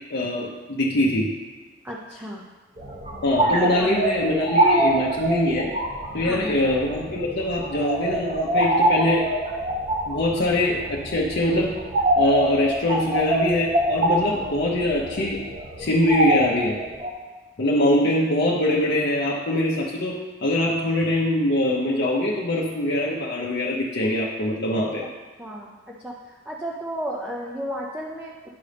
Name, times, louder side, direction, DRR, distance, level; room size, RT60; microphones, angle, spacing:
voice 1, 0.1-1.3 3.2-5.7 6.1-9.3 10.1-11.7 12.2-15.4 15.8-16.8 17.6-20.1 20.4-25.0, left 1 dB, 60° left, -4 dB, 0.8 m, -23 dB
voice 2, 1.8-2.5 3.8-4.1 6.2-6.7 25.4-25.7 26.0-26.1 26.5-28.5, equal, 10° right, -3 dB, 0.6 m, -33 dB
sound 1, 2.8-17.1, right 1 dB, 35° right, 0.9 m, -25 dB
9.3 x 5.2 x 3.4 m, 1.3 s
head